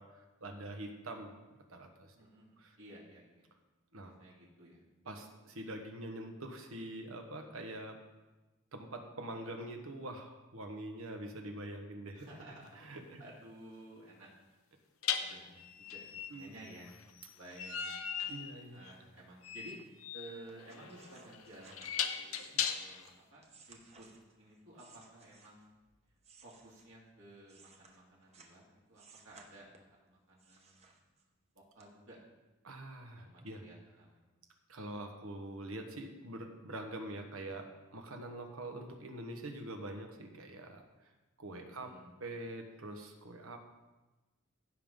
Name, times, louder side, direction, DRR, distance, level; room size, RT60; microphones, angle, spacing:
voice 1, 0.0-1.3 1.7-2.1 2.6-2.8 3.9-4.1 5.0-8.0 8.7-13.2 16.3-16.5 18.3-18.8 22.5-22.6 32.6-33.6 34.7-40.8 41.4-41.9 42.2-43.6, right 1 dB, 90° right, 4 dB, 1.3 m, -45 dB
voice 2, 2.2-3.5 4.0-4.8 12.1-12.8 13.2-14.3 15.2-15.6 15.9-16.9 17.3-18.0 18.7-19.8 20.1-21.9 22.2-24.1 24.4-25.7 26.4-28.6 28.9-30.9 31.5-32.2 33.2-34.2 41.6-42.1, right 1 dB, 70° right, -4 dB, 2.3 m, -54 dB
sound 1, 12.6-12.8 15.0-23.1, left 8 dB, 80° left, 0.7 m, -39 dB
sound 2, 20.5-25.8 26.2-28.6 28.9-30.0 30.4-31.4 31.8-31.9, right 4 dB, 30° right, 0.9 m, -61 dB
15.5 x 5.4 x 3.7 m, 1.1 s
head